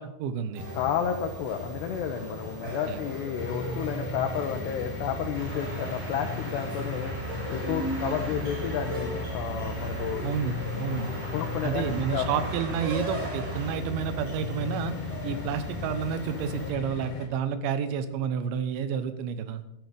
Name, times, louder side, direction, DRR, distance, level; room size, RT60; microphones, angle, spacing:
voice 1, 0.0-0.6 2.9-3.0 10.2-11.3 11.6-14.9 15.2-19.6, right 7 dB, 85° right, 10 dB, 3.2 m, -30 dB
sound 1, 0.5-16.7, equal, 40° right, 6.5 m, -38 dB
voice 2, 0.8-7.1 7.5-10.3 11.3-12.3, left 8 dB, 75° left, 3 dB, 2.8 m, -31 dB
sound 2, 3.4-17.3, left 2 dB, 55° left, 3.1 m, -37 dB
sound 3, 5.3-13.7, right 1 dB, 65° right, 5.9 m, -41 dB
14.0 x 7.3 x 6.7 m, 0.86 s
omnidirectional pair, 5.3 m